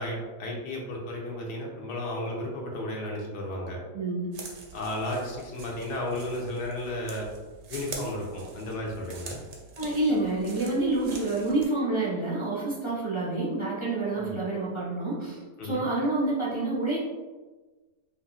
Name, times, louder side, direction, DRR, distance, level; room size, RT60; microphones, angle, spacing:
voice 1, 0.0-3.8 4.7-7.3 7.7-9.4 14.1-14.4 15.6-15.9, left 1 dB, 75° left, -1 dB, 1.4 m, -33 dB
voice 2, 3.9-4.4 9.8-17.0, right 2 dB, 25° left, -7 dB, 0.7 m, -28 dB
sound 1, 4.3-11.6, right 3 dB, 65° right, 0.7 m, -45 dB
5.2 x 2.3 x 2.3 m, 1.3 s
omnidirectional pair, 1.8 m